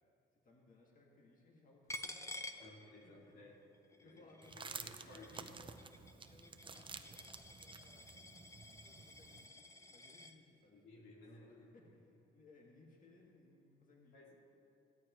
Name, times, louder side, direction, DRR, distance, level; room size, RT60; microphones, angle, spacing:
voice 1, 0.4-2.7 3.0-3.5 4.0-4.7 5.3-6.0 6.3-14.3, left 2 dB, 40° left, -2 dB, 2.1 m, -65 dB
Coin (dropping), 1.9-3.4 3.7-10.4, left 2 dB, 15° left, 0.7 m, -51 dB
voice 2, 2.6-3.6 3.9-4.2 4.5-5.7 10.7-11.9 14.1-14.3, left 2 dB, 75° left, -3 dB, 2.5 m, -57 dB
sound 1, 4.4-9.5, right 4 dB, 25° right, 0.7 m, -52 dB
16.0 x 13.5 x 3.1 m, 2.7 s
cardioid pair, 90°, 20 cm